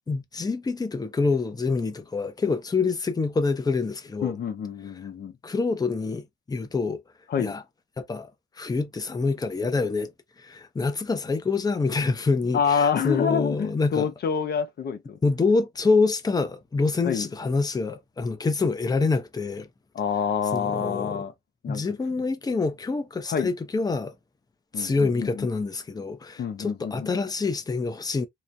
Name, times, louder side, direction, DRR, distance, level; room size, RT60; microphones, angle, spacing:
voice 1, 0.1-4.3 5.4-7.0 7.4-7.6 8.0-8.3 8.6-10.1 10.4-14.1 15.2-19.7 20.5-21.2 21.7-24.1 24.8-28.3, left 4 dB, 20° left, 0.6 m, -26 dB
voice 2, 4.2-5.3 7.3-7.5 12.5-15.2 17.0-17.3 19.9-21.3 21.6-21.8 23.3-23.5 24.7-25.5 26.4-27.1, left 7 dB, 55° left, 0.7 m, -27 dB
2.9 x 2.1 x 2.6 m
cardioid pair, 90°, 20 cm